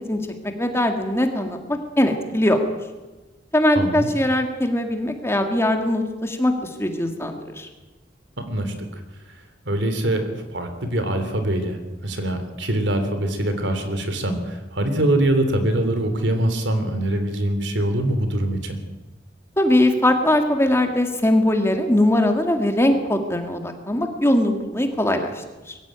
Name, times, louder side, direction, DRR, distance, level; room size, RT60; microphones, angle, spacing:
voice 1, 0.6-2.6 3.5-7.7 19.6-25.8, left 1 dB, 15° left, 5 dB, 2.2 m, -21 dB
voice 2, 3.7-4.1 8.5-9.0 9.6-18.7, right 1 dB, 75° right, 8 dB, 3.2 m, -23 dB
22.5 x 15.0 x 9.0 m, 1.2 s
head